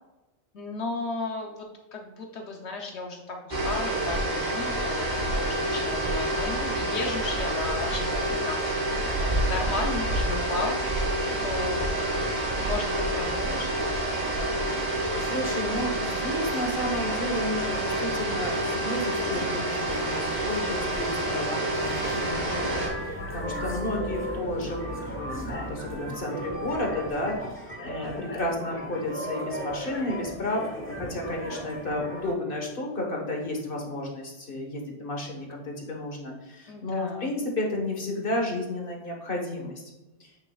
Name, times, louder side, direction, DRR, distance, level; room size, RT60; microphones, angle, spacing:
voice 1, 0.5-13.9 28.0-28.5 36.7-37.3, left 3 dB, 70° left, 2 dB, 1.0 m, -35 dB
sound 1, 3.5-22.9, right 1 dB, 40° right, 1.9 m, -28 dB
sound 2, 14.9-27.5, right 2 dB, 20° right, 1.2 m, -43 dB
voice 2, 15.2-27.5 27.8-39.8 40.2-40.3, left 1 dB, 50° left, 0 dB, 1.4 m, -32 dB
sound 3, 21.7-32.3, equal, 10° left, 0.9 m, -36 dB
8.4 x 6.5 x 2.3 m, 1.0 s
omnidirectional pair, 1.2 m